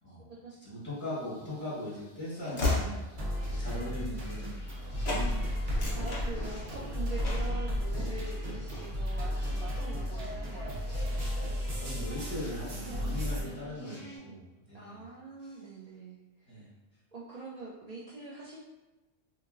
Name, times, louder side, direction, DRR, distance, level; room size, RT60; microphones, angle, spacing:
voice 1, 0.1-0.5 5.9-10.8 13.3-14.4 14.7-16.6 17.1-18.7, right 3 dB, 65° right, -6 dB, 0.4 m, -45 dB
voice 2, 0.6-3.0 3.5-5.9 11.8-15.0 16.4-16.7, left 1 dB, 10° left, -10 dB, 1.2 m, -40 dB
Train / Slam, 1.2-4.8 5.0-5.3 5.6-6.8 7.2-7.6, left 2 dB, 35° left, 0.6 m, -35 dB
sound 1, 3.2-13.4, equal, 85° right, 1.1 m, -33 dB
sound 2, 3.3-14.2, left 1 dB, 60° left, 0.9 m, -54 dB
2.8 x 2.7 x 2.4 m, 1.1 s
omnidirectional pair, 1.2 m